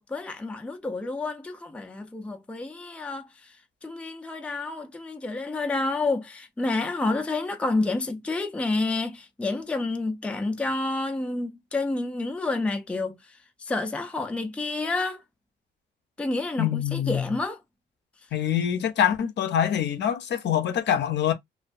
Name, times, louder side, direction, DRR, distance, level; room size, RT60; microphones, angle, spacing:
voice 1, 0.0-3.5 3.8-15.2 16.2-17.6, left 2 dB, 5° left, 0.4 m, -29 dB
voice 2, 16.6-17.2 18.3-21.3, left 9 dB, 60° left, 0.6 m, -25 dB
2.3 x 2.2 x 2.5 m
cardioid pair, 90°, 20 cm